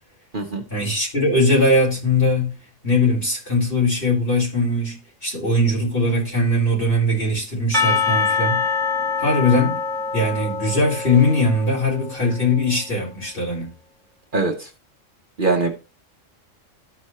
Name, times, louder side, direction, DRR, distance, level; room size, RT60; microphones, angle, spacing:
voice 1, 0.7-2.6 2.8-5.0 5.2-8.6 9.2-9.8 10.1-13.7, left 2 dB, 45° left, 5.0 m, -20 dB
Percussion / Church bell, 7.7-12.5, left 5 dB, 5° left, 0.9 m, -24 dB
voice 2, 14.3-14.7 15.4-15.7, right 3 dB, 45° right, 1.3 m, -22 dB
13.5 x 5.2 x 3.1 m
omnidirectional pair, 1.3 m